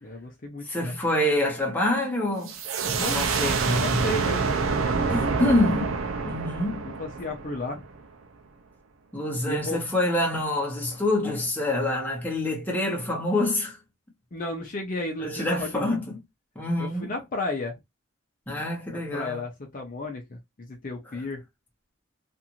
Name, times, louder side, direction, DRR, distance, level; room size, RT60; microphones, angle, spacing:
voice 1, 0.0-0.9 3.0-3.2 3.8-4.6 7.0-7.8 9.4-9.8 14.3-16.0 16.8-17.7 19.1-21.4, left 2 dB, 40° left, 0.6 m, -33 dB
voice 2, 0.6-2.6 2.8-4.0 5.1-6.0 6.2-6.8 9.1-13.8 15.2-16.2 16.5-17.1 18.5-19.4, left 1 dB, 10° left, 0.9 m, -26 dB
sound 1, 2.5-8.0, right 4 dB, 85° right, 0.6 m, -27 dB
2.6 x 2.5 x 2.8 m
head